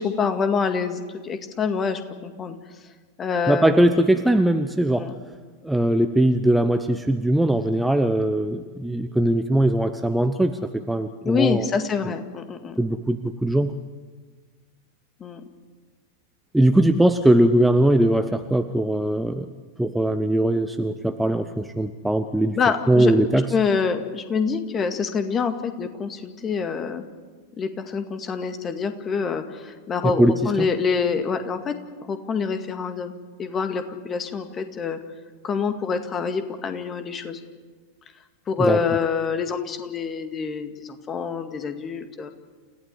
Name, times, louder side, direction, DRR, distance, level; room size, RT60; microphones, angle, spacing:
voice 1, 0.0-2.6 3.2-4.1 4.9-5.1 11.3-12.8 15.2-15.4 22.5-23.1 23.5-27.0 27.6-31.8 32.0-33.1 33.4-35.0 35.4-37.4 38.5-42.3, left 5 dB, 25° left, 8 dB, 2.0 m, -26 dB
voice 2, 3.5-5.1 5.6-10.6 10.9-11.7 12.8-13.7 16.5-19.5 19.8-22.6 22.9-23.5 30.0-30.5 38.6-38.8, right 1 dB, 5° right, 8 dB, 0.9 m, -20 dB
29.5 x 15.5 x 8.3 m, 1.4 s
figure-of-eight pair, 90°, 0 cm